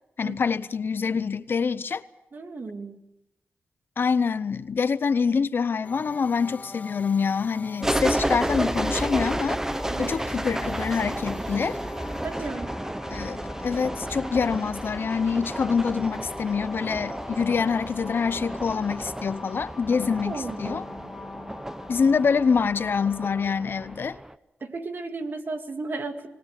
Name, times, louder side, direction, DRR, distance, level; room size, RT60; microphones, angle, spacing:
voice 1, 0.2-2.0 4.0-9.6 10.0-11.8 13.1-20.8 21.9-24.2, left 5 dB, 60° left, 0.8 m, -25 dB
voice 2, 2.3-3.0 9.9-10.1 12.2-12.7 20.3-20.8 24.6-26.3, right 3 dB, 55° right, 2.5 m, -34 dB
sound 1, 5.8-23.5, left 4 dB, 40° left, 1.1 m, -43 dB
sound 2, 7.8-24.3, right 1 dB, 10° right, 0.8 m, -32 dB
26.5 x 19.5 x 6.8 m
cardioid pair, 70°, 4 cm